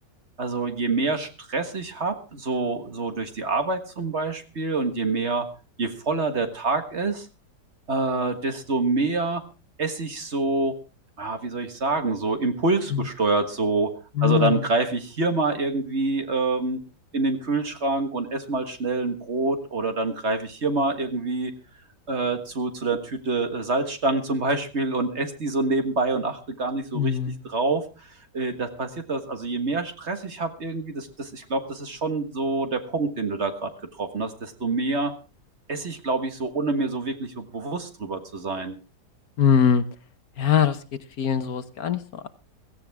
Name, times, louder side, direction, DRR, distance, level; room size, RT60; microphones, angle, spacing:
voice 1, 0.4-5.4 5.8-7.3 7.9-9.4 9.8-10.8 11.2-13.9 14.2-16.8 17.1-21.5 22.1-27.2 27.4-33.7 34.0-35.1 35.7-38.8, right 3 dB, 40° right, 7 dB, 1.7 m, -26 dB
voice 2, 14.2-14.6 26.9-27.4 39.4-39.8 40.4-40.8 41.2-42.3, left 8 dB, 65° left, 12 dB, 1.4 m, -22 dB
16.5 x 15.5 x 3.5 m, 0.32 s
omnidirectional pair, 1.8 m